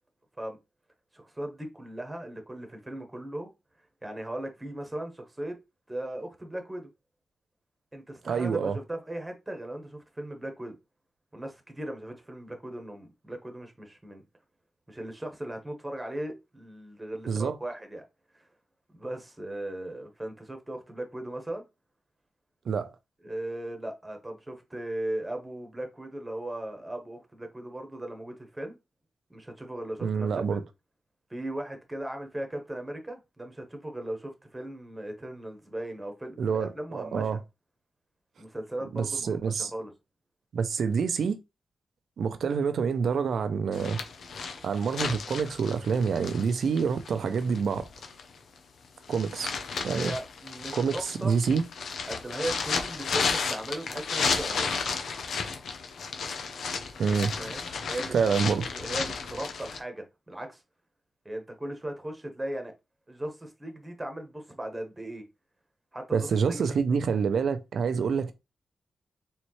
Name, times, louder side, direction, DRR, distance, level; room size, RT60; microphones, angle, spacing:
voice 1, 1.1-3.5 4.0-5.6 5.9-6.9 7.9-10.7 11.3-14.2 14.9-18.0 18.3-18.5 18.9-21.6 23.2-28.8 29.3-30.6 31.3-37.4 38.4-39.9 49.9-51.4 52.1-54.7 57.4-58.5 58.7-60.6 61.2-62.7 63.1-65.2 65.9-67.0, right 1 dB, 15° right, 1.2 m, -38 dB
voice 2, 8.2-8.8 17.3-17.6 22.7-22.9 30.0-30.6 36.4-37.4 38.9-39.7 40.5-41.4 42.2-44.0 44.6-47.9 49.1-49.5 49.8-50.1 50.7-51.6 57.0-57.3 58.1-58.7 66.1-68.3, right 6 dB, 75° right, 0.6 m, -27 dB
sound 1, 43.7-48.3 48.8-59.8, left 5 dB, 80° left, 0.7 m, -33 dB
4.3 x 3.2 x 3.1 m
cardioid pair, 95°, 0 cm